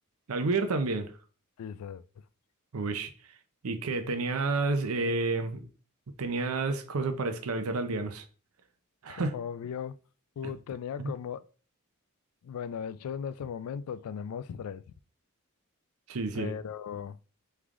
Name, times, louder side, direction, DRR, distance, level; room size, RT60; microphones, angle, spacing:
voice 1, 0.3-1.1 2.7-3.1 3.6-5.6 6.2-8.2 9.0-9.3 11.0-11.1 16.1-16.5, right 3 dB, 75° right, 0.6 m, -30 dB
voice 2, 1.6-2.0 9.1-10.0 10.4-11.5 12.4-14.8 16.3-17.2, left 7 dB, 90° left, 0.3 m, -37 dB
3.6 x 3.3 x 3.6 m
head